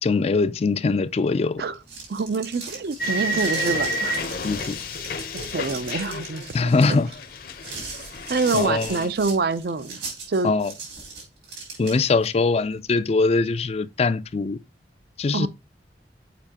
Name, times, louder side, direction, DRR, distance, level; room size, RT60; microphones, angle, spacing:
voice 1, 0.0-1.6 4.4-4.8 6.5-7.1 8.5-9.1 10.4-10.7 11.8-14.6 15.2-15.5, left 3 dB, 35° left, 0.4 m, -22 dB
sound 1, 1.7-12.3, right 4 dB, 80° right, 4.1 m, -38 dB
voice 2, 2.1-4.2 5.3-6.5 6.9-7.0 8.3-10.0 10.3-10.5 15.3-15.5, right 4 dB, 60° right, 0.5 m, -26 dB
sound 2, 3.0-6.9 7.2-9.1, equal, 55° left, 0.8 m, -30 dB
6.8 x 5.2 x 2.9 m
head